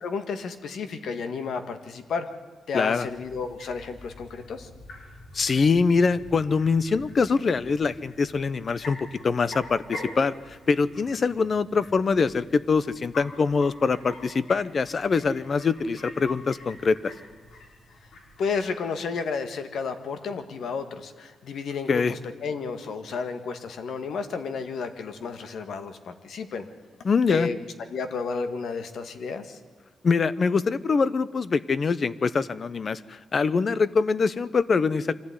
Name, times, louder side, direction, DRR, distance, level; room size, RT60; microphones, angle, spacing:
voice 1, 0.0-2.3 2.7-4.7 18.4-26.7 27.3-27.6 27.9-29.6, left 5 dB, 65° left, 9 dB, 1.8 m, -32 dB
voice 2, 2.7-3.1 5.3-17.1 21.9-22.1 27.0-27.5 30.0-35.1, left 4 dB, 35° left, 17 dB, 0.7 m, -24 dB
sound 1, 3.0-18.7, left 2 dB, 90° left, 5.5 m, -45 dB
24.0 x 15.0 x 9.8 m, 1.4 s
wide cardioid pair, 170°, 0 cm